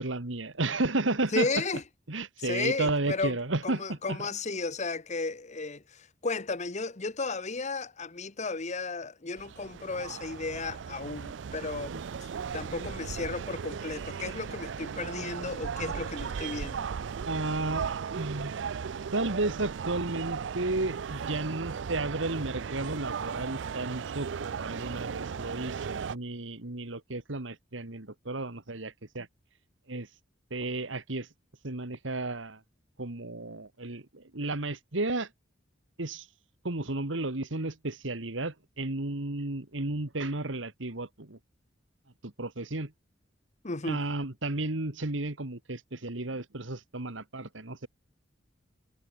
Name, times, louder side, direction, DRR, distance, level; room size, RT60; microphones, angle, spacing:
voice 1, 0.0-1.5 2.1-4.2 11.9-12.0 12.7-12.9 17.3-18.5 19.1-29.3 29.9-30.1 30.5-31.3 31.6-32.6 33.0-35.3 36.0-36.3 36.6-41.4 42.2-42.9 43.8-47.9, right 2 dB, 85° right, 2.0 m, -33 dB
voice 2, 1.3-1.8 2.4-3.4 3.6-16.9 43.6-44.0, left 3 dB, 40° left, 1.2 m, -34 dB
sound 1, 9.4-26.1, right 6 dB, 70° right, 0.4 m, -36 dB
head